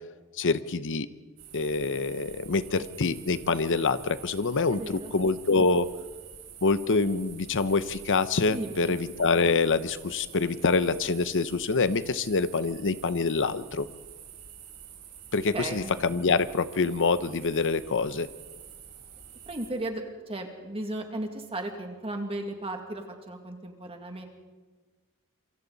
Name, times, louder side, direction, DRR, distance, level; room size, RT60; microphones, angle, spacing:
voice 1, 0.4-1.1 1.5-5.9 6.6-13.9 15.3-18.3, left 4 dB, 60° left, 13 dB, 0.8 m, -26 dB
sound 1, 1.4-19.7, right 8 dB, 90° right, 7.5 m, -47 dB
voice 2, 4.7-5.1 8.5-9.0 15.5-15.9 19.5-24.2, right 1 dB, 25° right, 3 dB, 2.2 m, -35 dB
27.5 x 23.5 x 4.1 m, 1.3 s
head